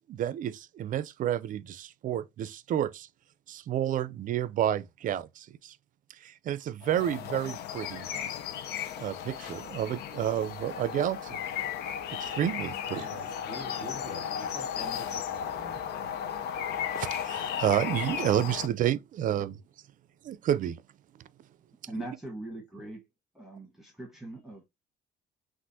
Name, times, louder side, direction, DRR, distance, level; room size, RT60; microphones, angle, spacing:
voice 1, 0.1-3.1 3.5-5.8 6.2-8.1 9.0-11.4 12.2-13.1 15.6-15.7 16.9-19.6 20.2-20.8 21.2-21.3, right 11 dB, 50° right, 0.5 m, -30 dB
sound 1, 6.8-18.7, left 8 dB, 75° left, 0.7 m, -35 dB
voice 2, 12.9-15.8, left 2 dB, 55° left, 2.0 m, -45 dB
voice 3, 21.8-23.0 23.3-24.6, right 1 dB, ahead, 1.3 m, -41 dB
6.0 x 2.5 x 2.7 m
cardioid pair, 110°, 17 cm